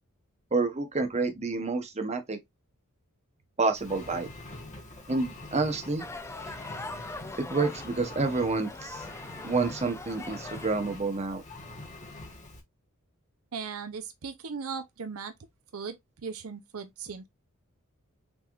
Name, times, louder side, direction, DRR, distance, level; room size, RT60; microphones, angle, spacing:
voice 1, 0.5-2.4 3.6-4.3 5.1-6.0 7.5-9.0 9.4-11.4, right 3 dB, 30° right, 1.0 m, -28 dB
Engine, 3.7-12.6, left 2 dB, 35° left, 1.4 m, -45 dB
sound 1, 6.0-11.0, left 2 dB, 15° left, 0.6 m, -42 dB
voice 2, 13.5-15.3 15.7-17.3, right 5 dB, 75° right, 0.7 m, -38 dB
6.0 x 3.4 x 2.5 m
head